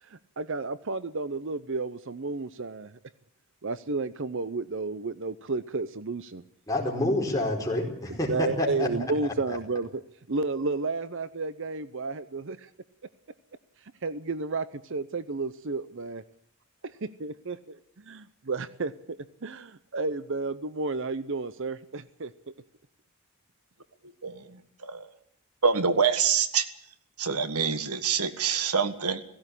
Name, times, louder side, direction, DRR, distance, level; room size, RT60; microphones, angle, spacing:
voice 1, 0.0-3.0 3.6-6.4 8.1-10.0 10.3-12.7 14.0-16.2 16.8-22.3, right 3 dB, 55° right, 14 dB, 0.7 m, -32 dB
voice 2, 6.7-8.9, left 1 dB, 15° left, 0 dB, 4.8 m, -27 dB
voice 3, 24.2-25.1 25.6-26.6 27.2-29.2, right 6 dB, 85° right, 10 dB, 1.6 m, -26 dB
16.5 x 16.5 x 9.9 m, 0.67 s
head